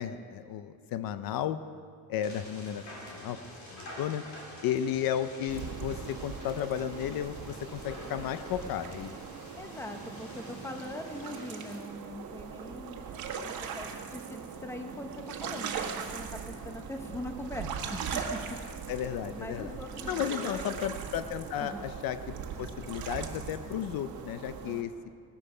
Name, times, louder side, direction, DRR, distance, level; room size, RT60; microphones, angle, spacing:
voice 1, 0.0-1.6 2.1-2.8 3.1-3.4 3.7-4.2 4.6-9.1 18.9-19.7 20.1-22.2 22.6-24.9, left 10 dB, 65° left, 11 dB, 0.6 m, -33 dB
sound 1, 2.2-11.8, left 1 dB, 45° left, 3.6 m, -48 dB
sound 2, 5.5-24.8, right 6 dB, 65° right, 1.6 m, -40 dB
voice 2, 9.6-18.2 18.5-18.9 19.3-20.8 21.6-21.9, left 1 dB, 5° left, 5 dB, 0.9 m, -42 dB
18.5 x 13.5 x 5.0 m, 2.2 s
cardioid pair, 175°, 39 cm